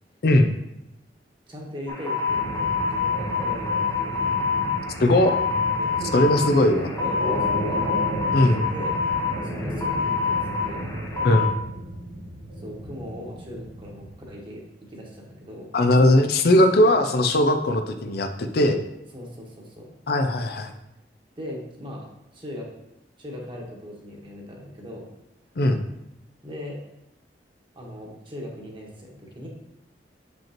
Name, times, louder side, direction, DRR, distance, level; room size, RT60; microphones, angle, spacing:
voice 1, 1.5-4.4 5.8-6.1 6.5-7.4 7.6-7.8 8.5-9.0 9.4-10.9 12.6-14.6 14.9-15.7 16.7-16.8 19.1-19.9 21.4-22.0 22.3-22.7 23.2-25.0 26.4-26.8 27.7-29.5, left 1 dB, 30° right, -2 dB, 1.4 m, -38 dB
sound 1, 1.9-11.5, left 5 dB, 20° left, 0.8 m, -27 dB
sound 2, 2.3-14.1, right 1 dB, 60° right, 2.4 m, -33 dB
voice 2, 5.0-5.4 6.1-6.9 8.3-8.6 11.2-11.5 15.7-18.8 20.1-20.7 25.6-25.8, left 1 dB, 60° left, 7 dB, 0.5 m, -19 dB
7.4 x 5.3 x 3.0 m, 0.88 s
head